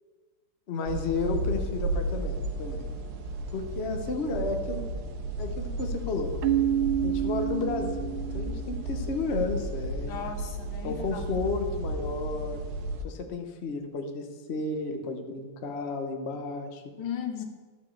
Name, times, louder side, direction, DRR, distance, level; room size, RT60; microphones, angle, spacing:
voice 1, 0.7-2.9 3.5-5.0 5.4-6.4 7.0-10.2 10.8-12.6 13.0-16.8, left 3 dB, 45° left, 4 dB, 0.9 m, -32 dB
sound 1, 0.9-13.0, right 1 dB, 60° right, 1.2 m, -33 dB
Keyboard (musical), 6.4-9.1, right 11 dB, 85° right, 1.4 m, -29 dB
voice 2, 10.1-11.2 17.0-17.4, left 8 dB, 75° left, 5 dB, 1.9 m, -36 dB
12.5 x 5.1 x 7.1 m, 1.4 s
omnidirectional pair, 2.3 m